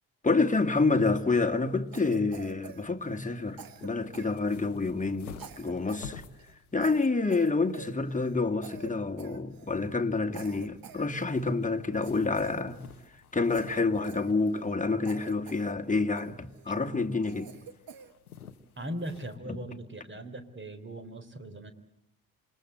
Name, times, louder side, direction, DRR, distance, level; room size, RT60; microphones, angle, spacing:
voice 1, 0.2-6.2 6.7-12.8 13.1-17.5, left 3 dB, 20° left, 2.3 m, -28 dB
sound 1, 0.9-19.4, left 7 dB, 90° left, 1.0 m, -53 dB
Cough, 1.9-3.3 3.6-4.8 5.3-6.1 6.4-6.5 6.8-8.4 8.6-8.9 9.2-9.8 10.3-11.5 12.0-13.1 13.5-14.8 15.0-15.7 16.2-16.7 17.2-18.1, right 7 dB, 55° right, 1.8 m, -48 dB
voice 2, 18.8-21.7, right 1 dB, 25° right, 3.8 m, -39 dB
27.5 x 23.0 x 8.0 m
figure-of-eight pair, 40°, 43 cm